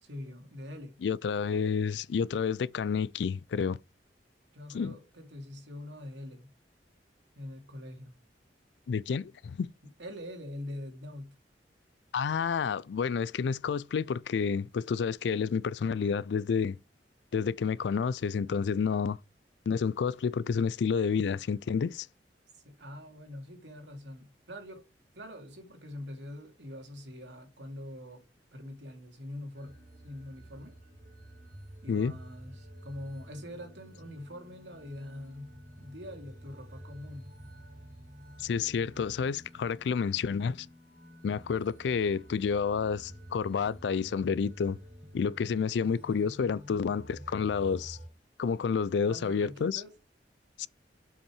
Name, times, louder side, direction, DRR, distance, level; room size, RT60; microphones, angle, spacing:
voice 1, 0.0-1.0 4.5-6.5 7.3-8.1 10.0-11.3 22.5-24.9 25.1-28.2 28.5-29.7 30.0-30.7 31.8-35.5 35.8-37.3 49.1-49.9, left 1 dB, 80° right, 2.6 m, -44 dB
voice 2, 1.0-3.8 4.7-4.9 8.9-9.7 12.1-16.8 17.3-19.2 19.7-22.1 31.9-32.1 38.4-40.7 41.2-44.8 45.1-48.0 48.4-49.8 50.6-50.7, left 6 dB, 70° left, 0.3 m, -29 dB
sound 1, 29.5-48.1, equal, 45° right, 4.1 m, -50 dB
7.3 x 5.6 x 4.8 m
head